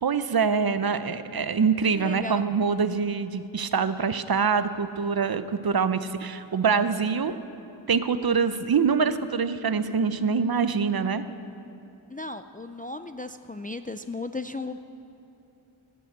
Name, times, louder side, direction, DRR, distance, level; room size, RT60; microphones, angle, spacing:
voice 1, 0.0-7.3 7.9-11.2, right 5 dB, 50° right, 12 dB, 0.6 m, -25 dB
voice 2, 1.9-2.4 12.1-14.8, left 2 dB, 20° left, 9 dB, 0.3 m, -35 dB
16.5 x 7.6 x 8.0 m, 2.7 s
wide cardioid pair, 65°, 49 cm